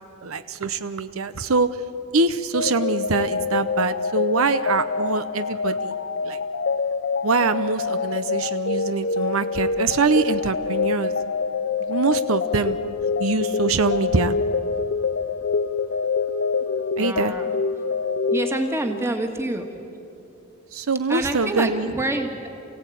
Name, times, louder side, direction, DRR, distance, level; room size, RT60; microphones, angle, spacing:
voice 1, 0.2-1.8 2.1-5.9 6.2-6.4 7.2-11.1 11.8-12.8 13.2-14.3 17.0-17.3 20.7-21.9, right 4 dB, 75° right, 11 dB, 0.8 m, -24 dB
sound 1, 2.5-19.1, left 5 dB, 55° left, 0.6 m, -26 dB
voice 2, 17.0-17.5 18.3-19.7 21.1-22.5, right 1 dB, 10° right, 5 dB, 1.7 m, -27 dB
28.0 x 16.5 x 9.1 m, 2.8 s
head